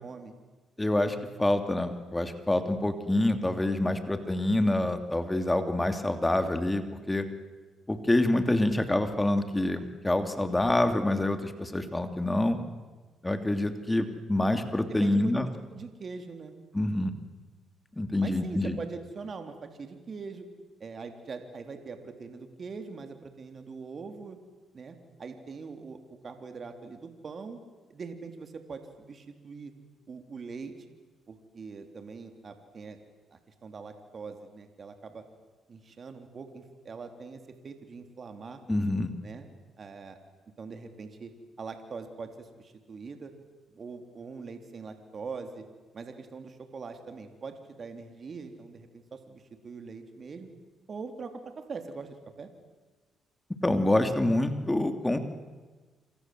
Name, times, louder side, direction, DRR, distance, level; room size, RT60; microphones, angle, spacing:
voice 1, 0.0-0.3 14.9-15.3 15.7-16.5 18.2-20.5 20.8-24.4 24.7-27.6 27.9-29.7 30.1-30.7 31.3-33.0 33.3-35.2 35.7-38.6 39.2-39.5 39.8-40.2 40.6-41.3 41.6-43.3 43.7-45.6 45.9-50.5 50.9-52.5, right 4 dB, 45° right, 6 dB, 3.5 m, -42 dB
voice 2, 0.8-7.3 7.9-12.6 13.2-15.5 16.7-17.1 18.0-18.8 38.7-39.1 53.6-55.2, left 1 dB, 15° left, 7 dB, 2.9 m, -26 dB
28.0 x 26.0 x 7.9 m, 1.3 s
supercardioid pair, 70°, 0 cm